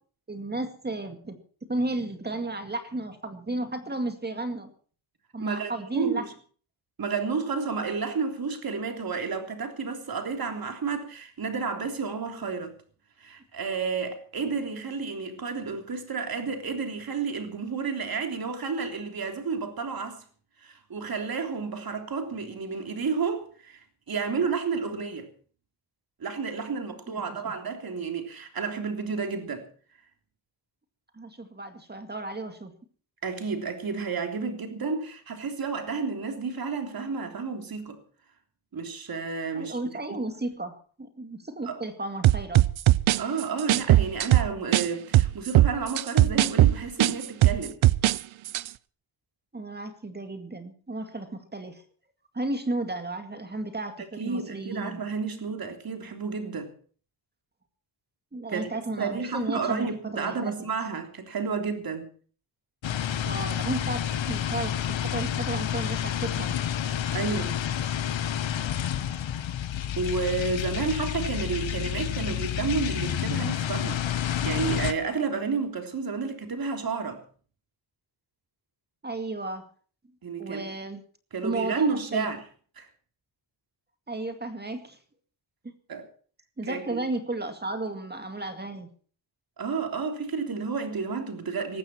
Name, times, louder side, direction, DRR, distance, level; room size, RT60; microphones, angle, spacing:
voice 1, 0.3-1.4 1.7-4.7 5.3-6.2 27.1-27.5 31.1-32.7 39.5-42.6 49.5-51.8 52.3-55.0 58.3-60.5 63.2-66.6 79.0-79.7 80.4-81.0 81.4-82.3 84.1-85.0 85.6-85.7 86.6-88.9, right 2 dB, 20° right, 2.1 m, -33 dB
voice 2, 5.4-6.2 7.0-12.8 13.2-20.2 20.6-25.3 26.2-29.7 33.2-38.0 38.7-39.8 41.6-41.8 43.2-47.8 54.2-56.7 58.5-58.7 59.0-62.1 67.1-67.5 70.0-77.2 80.2-80.6 81.3-82.4 82.8-82.9 85.9-86.1 86.6-87.0 89.6-91.8, right 5 dB, 50° right, 3.5 m, -31 dB
sound 1, 42.2-44.9 45.1-48.2 48.5-48.7, right 15 dB, 85° right, 0.7 m, -19 dB
sound 2, 62.8-74.9, left 10 dB, 75° left, 1.3 m, -29 dB
19.5 x 14.5 x 4.5 m
wide cardioid pair, 145°, 46 cm